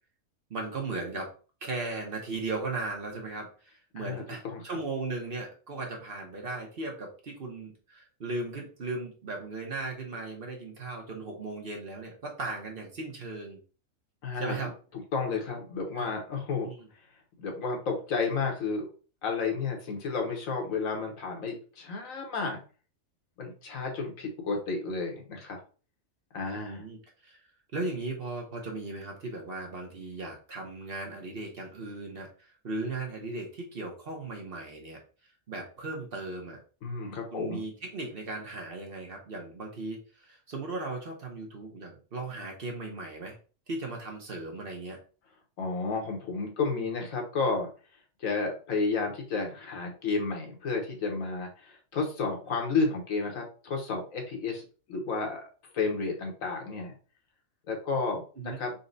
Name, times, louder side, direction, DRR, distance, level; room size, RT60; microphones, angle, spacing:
voice 1, 0.5-1.3 1.6-13.6 14.3-14.7 16.0-16.1 16.6-16.9 26.5-27.4 27.7-35.0 35.5-36.6 37.3-43.4 43.7-45.0 45.9-46.0 46.6-46.8 58.4-58.6, right 3 dB, 50° right, 1 dB, 1.0 m, -37 dB
voice 2, 4.0-4.8 14.2-14.5 15.1-16.7 17.4-18.9 19.2-22.6 23.4-25.6 26.3-26.8 36.8-37.6 45.6-47.7 48.2-54.6 54.9-55.4 55.7-56.9 57.7-58.7, left 4 dB, 75° left, 2 dB, 1.4 m, -31 dB
4.1 x 2.2 x 3.9 m, 0.37 s
omnidirectional pair, 1.4 m